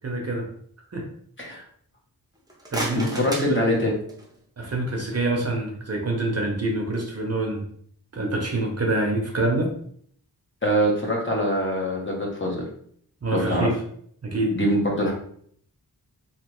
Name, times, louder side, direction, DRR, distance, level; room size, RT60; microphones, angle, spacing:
voice 1, 0.0-0.5 0.9-1.1 2.7-3.9 4.6-7.6 8.1-9.7 13.2-13.8 14.2-14.6, right 2 dB, 40° right, 0 dB, 0.7 m, -26 dB
sound 1, 2.3-4.4, right 1 dB, 10° right, 0.7 m, -34 dB
voice 2, 3.0-4.0 10.6-12.6 13.3-13.7 14.5-15.1, equal, 30° left, -1 dB, 0.8 m, -24 dB
3.1 x 2.7 x 3.0 m, 0.62 s
wide cardioid pair, 125°, 38 cm